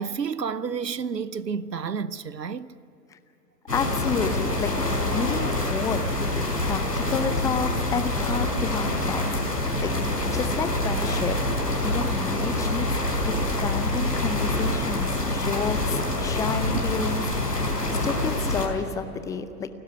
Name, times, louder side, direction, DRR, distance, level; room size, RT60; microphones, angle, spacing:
voice 1, 0.0-2.7 16.7-16.8, right 6 dB, 85° right, 0.9 m, -30 dB
sound 1, 3.7-18.7, left 1 dB, 90° left, 4.9 m, -26 dB
voice 2, 3.7-4.7 5.0-6.0 6.6-9.9 10.3-11.4 11.8-12.9 13.2-19.7, left 5 dB, 5° left, 0.6 m, -30 dB
29.0 x 12.5 x 9.2 m
figure-of-eight pair, 110°, 48 cm